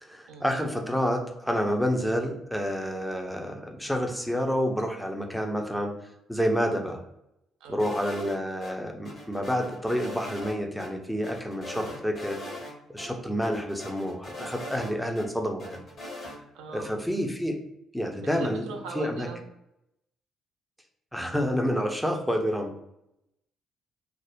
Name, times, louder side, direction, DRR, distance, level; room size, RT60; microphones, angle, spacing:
voice 1, 0.0-5.9 6.3-7.0 7.7-12.4 12.9-15.8 16.7-17.6 17.9-18.6 18.9-19.3 21.1-22.7, equal, 5° left, 2 dB, 0.6 m, -29 dB
sound 1, 7.8-8.7 9.1-10.5 10.8-10.9 11.2-12.7 13.0-13.1 13.4-15.3 15.6-16.4, left 2 dB, 50° left, 1.1 m, -40 dB
voice 2, 16.5-16.9 18.2-19.4, right 3 dB, 70° right, 3 dB, 0.5 m, -40 dB
2.6 x 2.0 x 3.4 m, 0.85 s
figure-of-eight pair, 45°, 0 cm